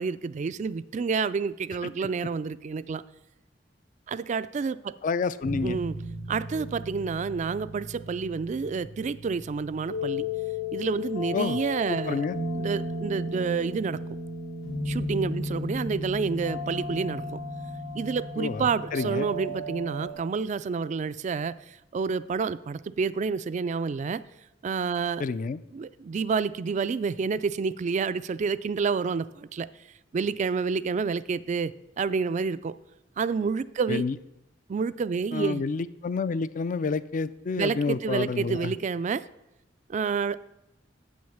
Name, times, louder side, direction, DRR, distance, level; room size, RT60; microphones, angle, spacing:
voice 1, 0.0-3.0 4.1-4.9 5.6-6.0 6.3-10.3 10.7-12.3 12.5-14.0 14.9-17.4 17.9-24.2 24.6-25.2 25.7-29.7 30.1-32.7 33.2-34.0 34.7-35.6 37.6-39.3 39.9-40.4, right 5 dB, 40° right, 16 dB, 0.3 m, -29 dB
voice 2, 5.0-5.8 11.3-11.6 11.9-12.4 18.4-19.3 25.2-25.6 33.9-34.1 35.3-38.7, left 4 dB, 45° left, 16 dB, 0.4 m, -29 dB
sound 1, 5.4-20.1, left 2 dB, 90° left, 2.2 m, -35 dB
8.0 x 6.3 x 7.1 m, 0.90 s
head